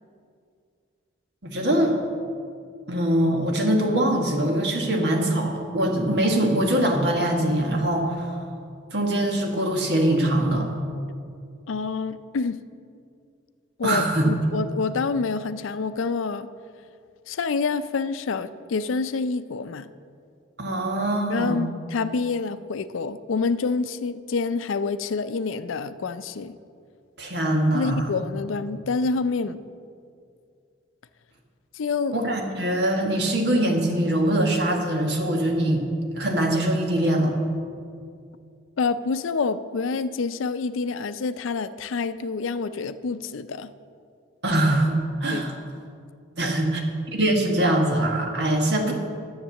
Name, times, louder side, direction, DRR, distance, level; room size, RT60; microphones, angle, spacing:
voice 1, 1.4-2.0 2.9-8.4 8.9-10.7 13.8-14.3 20.6-21.7 27.2-28.1 32.1-35.8 36.2-37.3 44.4-45.6 46.4-46.8 47.1-48.9, right 1 dB, 60° right, 1 dB, 1.5 m, -23 dB
voice 2, 11.7-12.6 13.8-16.5 17.3-19.9 21.3-26.5 27.7-29.6 31.8-32.1 38.8-43.7 45.3-45.4, left 4 dB, 85° left, 13 dB, 0.5 m, -27 dB
10.5 x 7.3 x 7.0 m, 2.3 s
head